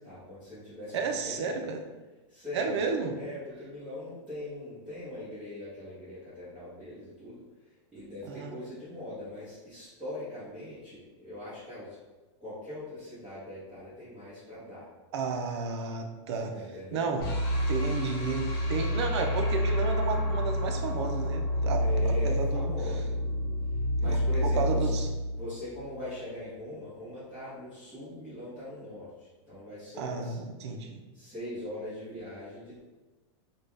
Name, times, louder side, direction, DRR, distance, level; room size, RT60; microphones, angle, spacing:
voice 1, 0.0-1.7 2.3-11.9 12.4-14.9 16.3-17.1 21.8-23.1 24.0-25.0 25.3-30.4 31.1-32.8, left 1 dB, 5° right, -16 dB, 1.1 m, -41 dB
voice 2, 0.9-1.8 2.5-3.1 8.3-8.6 15.1-16.5 16.9-17.3 17.7-21.8 22.2-22.7 24.0-24.2 24.4-25.1 30.0-31.0, right 5 dB, 65° right, 4 dB, 0.5 m, -32 dB
sound 1, 17.2-26.3, equal, 45° left, 0.9 m, -29 dB
3.7 x 2.3 x 3.4 m, 1.2 s
supercardioid pair, 180°, 15 cm